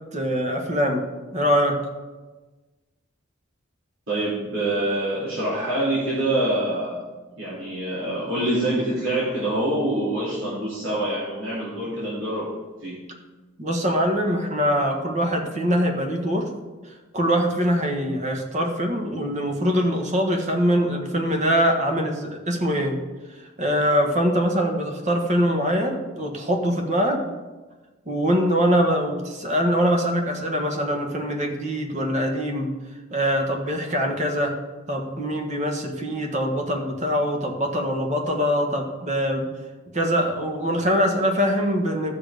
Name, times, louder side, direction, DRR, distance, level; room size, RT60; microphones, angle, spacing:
voice 1, 0.1-1.0 1.3-1.8 13.6-16.5 17.1-23.0 23.6-27.2 28.1-32.7 33.1-34.5 34.9-39.5 39.9-42.1, equal, 35° right, 2 dB, 1.5 m, -23 dB
voice 2, 4.1-7.0 7.4-12.5 12.8-13.0, right 1 dB, 80° right, -9 dB, 3.5 m, -25 dB
12.5 x 6.7 x 5.1 m, 1.2 s
head